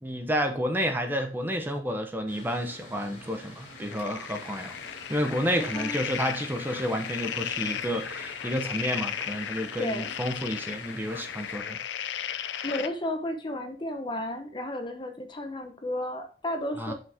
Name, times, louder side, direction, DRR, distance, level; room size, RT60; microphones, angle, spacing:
voice 1, 0.0-4.7 5.1-11.8 16.8-16.9, equal, 10° right, 5 dB, 0.9 m, -30 dB
Mechanical fan, 2.3-11.6, left 1 dB, 40° left, 2.8 m, -47 dB
sound 1, 3.6-12.9, left 9 dB, 80° left, 0.4 m, -35 dB
voice 2, 5.5-6.0 9.8-10.2 12.6-16.9, left 1 dB, 25° left, 5 dB, 0.8 m, -33 dB
6.0 x 5.5 x 3.5 m, 0.38 s
head